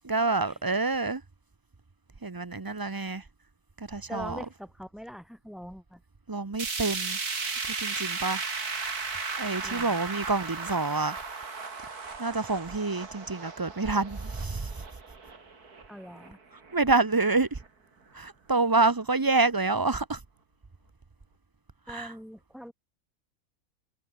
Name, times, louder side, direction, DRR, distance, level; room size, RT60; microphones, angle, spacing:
voice 1, 0.0-1.2 2.2-3.2 3.8-4.4 6.3-7.2 7.8-8.4 9.4-11.2 12.2-14.7 16.7-17.6 18.1-20.2 21.9-22.1, right 3 dB, 20° right, 0.6 m, -27 dB
voice 2, 4.1-6.0 9.6-10.2 15.9-16.4 21.9-22.7, equal, ahead, 7.6 m, -43 dB
sound 1, 6.6-16.8 17.2-17.3 17.6-17.7 18.6-18.7, right 4 dB, 90° right, 3.4 m, -35 dB
omnidirectional pair, 1.6 m